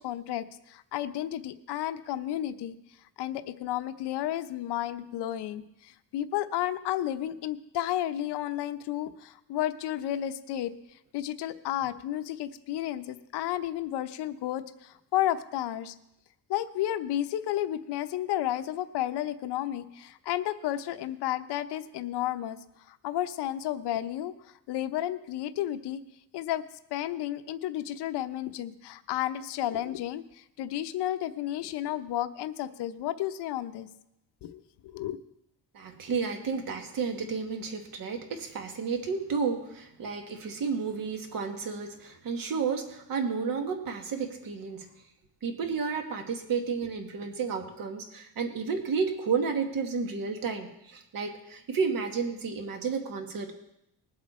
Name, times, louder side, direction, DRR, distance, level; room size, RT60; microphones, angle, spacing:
voice 1, 0.0-2.8 3.2-10.7 11.1-15.9 16.5-22.6 22.9-24.3 24.7-26.0 26.3-26.6 26.9-33.9 34.4-35.2, left 12 dB, 70° left, 11 dB, 0.8 m, -32 dB
voice 2, 35.7-44.9 45.4-53.5, right 5 dB, 50° right, 5 dB, 1.7 m, -32 dB
20.5 x 7.5 x 4.3 m, 0.81 s
cardioid pair, 165°, 41 cm